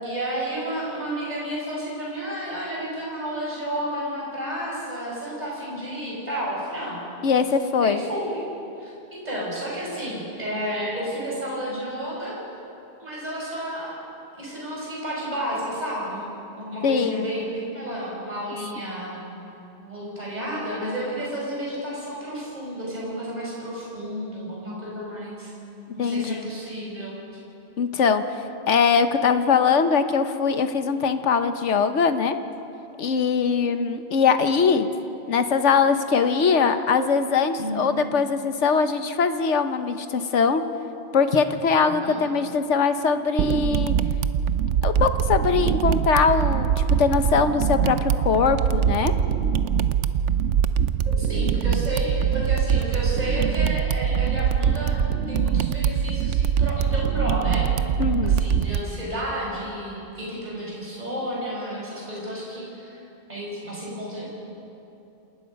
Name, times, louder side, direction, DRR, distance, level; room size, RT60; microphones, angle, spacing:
voice 1, 0.0-7.1 7.8-8.4 8.8-12.4 13.0-13.9 14.3-19.3 19.8-25.5 25.9-27.1 37.6-37.9 41.8-42.2 51.0-55.0 55.3-57.7 58.2-63.0 63.3-64.3, right 1 dB, 35° right, -5 dB, 5.4 m, -31 dB
voice 2, 7.2-8.0 16.8-17.2 26.0-26.3 27.8-28.2 28.7-32.3 33.0-34.9 35.3-40.6 41.1-43.9 44.8-49.1 58.0-58.4, left 5 dB, 80° left, 9 dB, 1.3 m, -21 dB
sound 1, 43.4-58.8, right 8 dB, 85° right, 1.0 m, -23 dB
27.5 x 19.0 x 5.3 m, 2.9 s
omnidirectional pair, 1.2 m